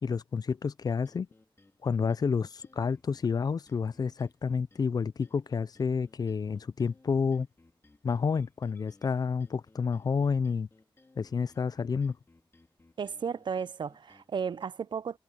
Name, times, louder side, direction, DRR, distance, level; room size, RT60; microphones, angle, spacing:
voice 1, 0.0-1.3 1.8-7.5 8.0-10.7 11.2-12.2, left 5 dB, 45° left, 0.4 m, -29 dB
sound 1, 1.0-14.7, left 2 dB, 25° left, 3.1 m, -63 dB
voice 2, 13.0-15.2, right 6 dB, 55° right, 0.6 m, -34 dB
wide cardioid pair, 155°, 9 cm